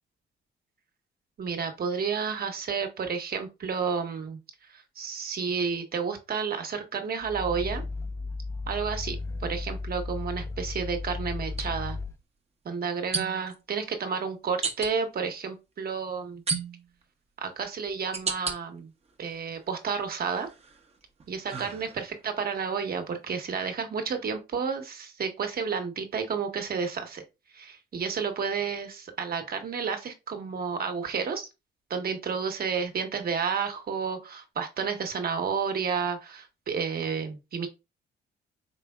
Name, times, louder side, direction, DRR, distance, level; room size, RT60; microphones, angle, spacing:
voice 1, 1.4-4.4 4.7-7.8 8.7-12.0 12.6-16.4 17.4-18.9 19.2-20.5 21.3-27.2 27.5-31.5 31.9-37.7, right 6 dB, 50° right, 1.1 m, -31 dB
Growling, 7.2-12.2, left 3 dB, 15° left, 0.8 m, -35 dB
sound 1, 8.7-8.8 11.5-11.7 13.1-13.6 14.6-14.9 16.5-17.0 17.6-18.6 19.1-19.8 20.3-22.3, right 4 dB, 30° right, 0.8 m, -34 dB
4.9 x 3.4 x 2.3 m
cardioid pair, 90°, 20 cm